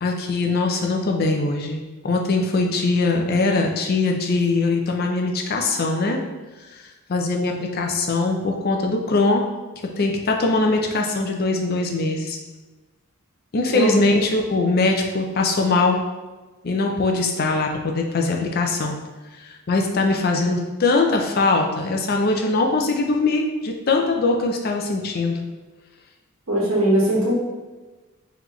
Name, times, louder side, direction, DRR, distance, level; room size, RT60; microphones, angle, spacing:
voice 1, 0.0-6.2 7.1-9.4 10.0-12.4 13.5-16.0 16.6-19.0 19.4-25.4, left 3 dB, 45° left, 2 dB, 0.5 m, -21 dB
voice 2, 26.5-27.3, right 1 dB, 60° right, -5 dB, 1.4 m, -20 dB
4.0 x 3.2 x 3.1 m, 1.2 s
head